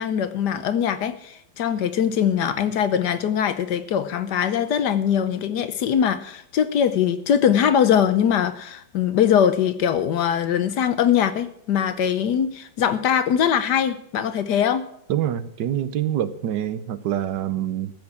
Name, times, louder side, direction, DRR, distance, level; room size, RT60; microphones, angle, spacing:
voice 1, 0.0-14.9, left 8 dB, 65° left, 12 dB, 1.3 m, -22 dB
voice 2, 15.1-17.9, right 11 dB, 70° right, 13 dB, 1.4 m, -25 dB
14.5 x 6.2 x 8.7 m, 0.71 s
omnidirectional pair, 2.0 m